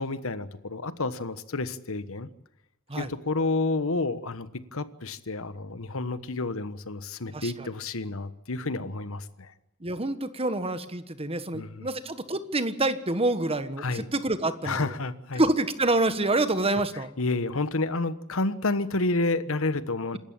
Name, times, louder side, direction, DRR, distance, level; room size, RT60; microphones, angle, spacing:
voice 1, 0.0-2.3 3.0-9.5 11.5-11.9 13.8-14.1 14.6-15.4 17.2-20.2, left 3 dB, 65° left, 13 dB, 1.3 m, -30 dB
voice 2, 7.3-7.7 9.8-14.9 15.4-17.1, right 2 dB, 25° right, 11 dB, 1.4 m, -27 dB
27.0 x 13.5 x 8.8 m, 0.87 s
head